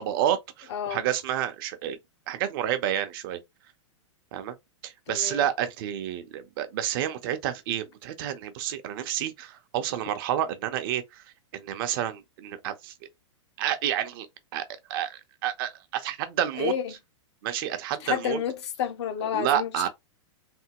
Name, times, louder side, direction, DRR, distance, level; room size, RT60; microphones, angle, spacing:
voice 1, 0.0-2.0 2.3-3.4 4.3-4.5 4.8-11.2 11.5-12.9 13.6-14.3 14.5-14.6 14.9-16.7 17.4-18.4 19.2-19.9, right 11 dB, 45° right, 0.7 m, -29 dB
voice 2, 0.7-1.0 5.1-5.4 16.6-16.9 18.0-19.7, left 9 dB, 60° left, 0.8 m, -30 dB
3.4 x 2.2 x 2.9 m
hypercardioid pair, 150°, 16 cm